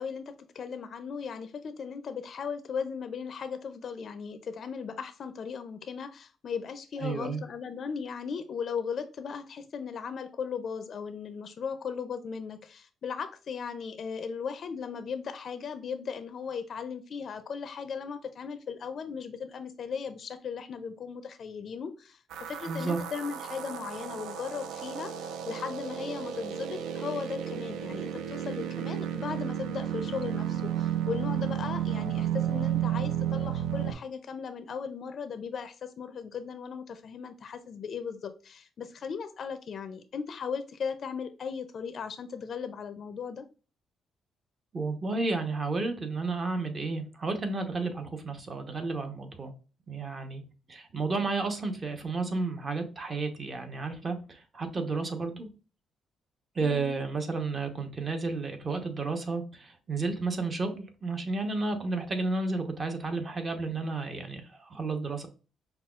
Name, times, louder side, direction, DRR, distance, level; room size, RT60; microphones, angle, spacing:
voice 1, 0.0-22.2 22.5-43.5 56.6-57.0, left 6 dB, 55° left, 10 dB, 0.4 m, -37 dB
voice 2, 7.0-7.4 22.7-23.0 44.7-49.5 49.9-50.4 50.7-55.5 56.5-65.3, right 3 dB, 35° right, 6 dB, 0.8 m, -32 dB
sound 1, 22.3-33.9, right 10 dB, 90° right, 0.3 m, -32 dB
5.6 x 2.3 x 2.3 m, 0.34 s
cardioid pair, 90°, 0 cm